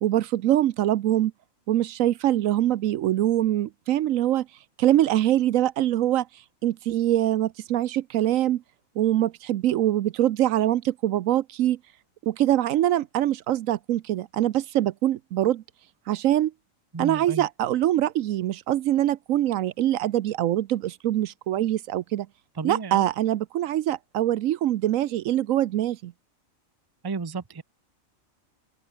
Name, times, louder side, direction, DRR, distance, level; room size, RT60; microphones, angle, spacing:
voice 1, 0.0-1.3 1.7-4.5 4.8-6.3 6.6-8.6 9.0-11.8 12.2-15.6 16.1-16.5 17.0-22.3 22.6-26.1, right 13 dB, 75° right, 1.0 m, -23 dB
voice 2, 16.9-17.5 22.5-23.0 27.0-27.6, right 4 dB, 20° right, 0.7 m, -32 dB
open air
omnidirectional pair, 1.4 m